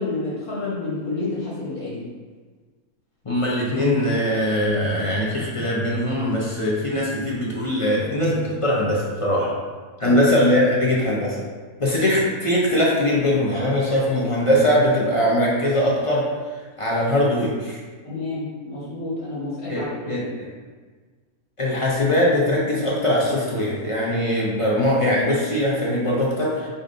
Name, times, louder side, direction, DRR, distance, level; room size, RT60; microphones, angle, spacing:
voice 1, 0.0-2.1 10.0-10.2 18.0-20.2, left 2 dB, 75° left, -7 dB, 2.0 m, -29 dB
voice 2, 3.2-9.5 10.0-11.4 11.8-16.3 16.8-17.8 19.7-20.2 21.6-26.7, left 1 dB, 30° left, -5 dB, 0.6 m, -21 dB
5.0 x 4.0 x 2.6 m, 1.5 s
omnidirectional pair, 1.5 m